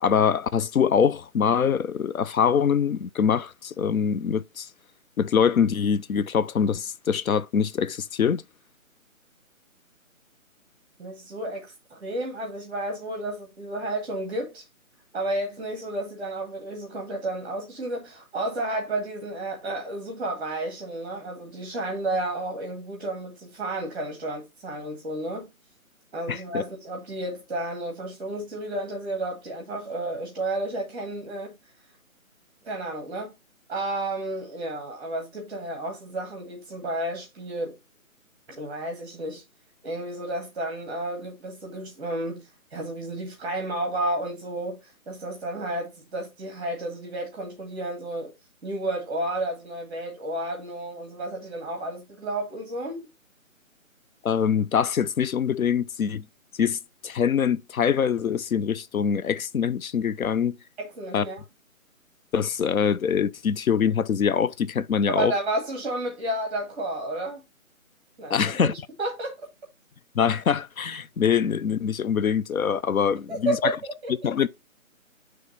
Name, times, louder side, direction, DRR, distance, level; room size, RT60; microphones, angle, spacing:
voice 1, 0.0-4.7 5.2-8.4 26.3-26.6 54.2-56.2 56.6-56.8 57.0-60.6 61.1-61.3 62.3-65.3 68.3-68.7 70.1-73.8 74.2-74.5, left 7 dB, 80° left, 0.6 m, -24 dB
voice 2, 11.0-14.6 15.1-25.5 26.1-31.5 32.6-33.3 33.7-37.8 38.5-39.4 39.8-44.8 45.1-48.3 48.6-53.1 60.8-61.4 65.1-67.4 68.2-68.7 69.0-69.5 73.3-74.1, right 1 dB, 5° right, 1.0 m, -32 dB
7.8 x 3.2 x 4.0 m
figure-of-eight pair, 155°, 42 cm